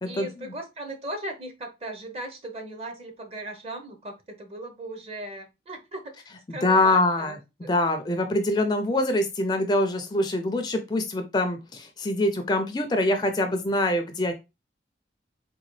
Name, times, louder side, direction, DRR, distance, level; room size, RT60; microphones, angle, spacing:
voice 1, 0.0-6.2 6.5-7.4 7.6-7.7, right 1 dB, 35° right, 4 dB, 0.7 m, -37 dB
voice 2, 6.5-7.4 7.7-14.3, left 2 dB, 25° left, 6 dB, 0.4 m, -24 dB
3.8 x 2.2 x 3.1 m, 0.25 s
head